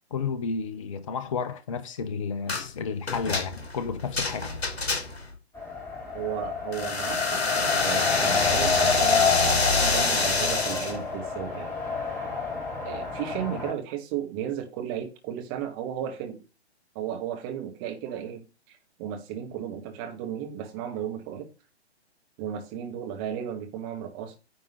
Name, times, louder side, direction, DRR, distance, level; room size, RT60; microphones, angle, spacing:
voice 1, 0.1-4.5, left 5 dB, 30° left, 0.6 m, -32 dB
sound 1, 2.5-2.7 3.1-5.3 6.7-11.0, left 3 dB, 65° left, 2.5 m, -26 dB
Race car auto racing, 5.5-13.7, left 5 dB, 5° left, 2.3 m, -28 dB
voice 2, 6.1-7.4 7.8-11.7 12.8-16.4 16.9-21.5 22.4-24.4, right 9 dB, 20° right, 1.5 m, -34 dB
9.9 x 3.6 x 6.4 m
figure-of-eight pair, 135°, 33 cm